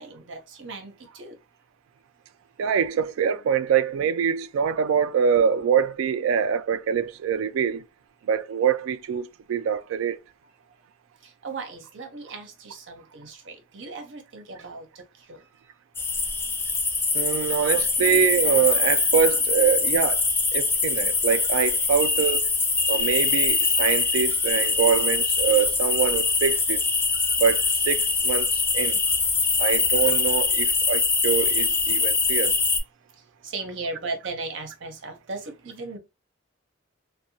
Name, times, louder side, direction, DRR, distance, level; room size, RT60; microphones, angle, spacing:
voice 1, 0.0-1.4 11.2-15.5 33.1-36.0, right 3 dB, 65° right, 0.7 m, -37 dB
voice 2, 2.6-7.8 8.3-10.2 17.1-20.2 20.5-22.5 22.9-26.8 27.4-29.0 29.6-32.6, right 7 dB, 90° right, 0.3 m, -24 dB
sound 1, 15.9-32.8, left 4 dB, 10° left, 0.3 m, -23 dB
2.7 x 2.2 x 2.6 m
head